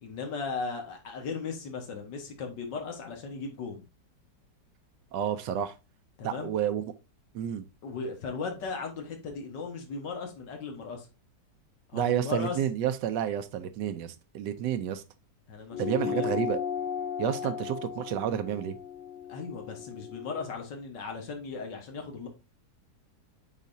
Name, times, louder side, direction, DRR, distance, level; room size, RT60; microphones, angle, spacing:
voice 1, 0.0-3.8 6.2-6.5 7.8-11.1 11.9-12.6 15.5-16.3 19.3-22.3, left 4 dB, 80° left, 2.0 m, -37 dB
voice 2, 5.1-5.7 6.2-6.8 7.3-7.6 11.9-15.0 15.8-16.6 17.2-18.8, right 9 dB, 85° right, 1.3 m, -30 dB
sound 1, 15.7-20.5, left 8 dB, 45° left, 0.6 m, -35 dB
9.4 x 4.1 x 2.6 m
omnidirectional pair, 1.9 m